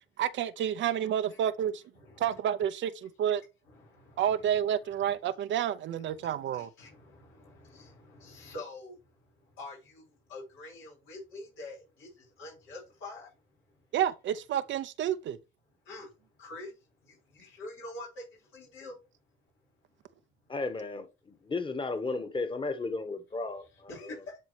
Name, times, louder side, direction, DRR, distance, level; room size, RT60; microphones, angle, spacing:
voice 1, 0.2-1.8 2.2-3.4 4.2-6.7 13.9-15.4, right 10 dB, 70° right, 0.6 m, -29 dB
voice 2, 3.7-4.3 6.3-9.0 9.6-10.0 10.3-12.1 12.4-13.3 15.9-16.1 16.4-16.7 17.1-18.2 18.5-18.9 23.9-24.4, left 2 dB, 90° left, 5.0 m, -45 dB
voice 3, 20.5-21.1 21.4-24.2, left 3 dB, 25° left, 1.4 m, -34 dB
12.0 x 4.1 x 3.2 m
cardioid pair, 90°, 20 cm